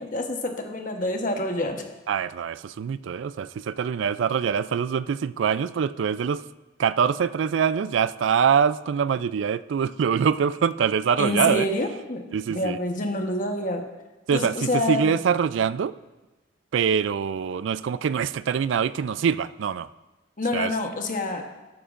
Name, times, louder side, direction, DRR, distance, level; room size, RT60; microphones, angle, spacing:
voice 1, 0.0-1.8 11.2-12.2 12.5-13.9 14.3-15.1 20.4-21.4, left 1 dB, 40° left, 4 dB, 1.1 m, -27 dB
voice 2, 2.1-6.4 6.8-11.7 12.3-12.8 14.3-16.0 16.7-19.9 20.5-20.7, right 7 dB, 70° right, 16 dB, 0.3 m, -24 dB
13.5 x 11.0 x 2.5 m, 1.1 s
head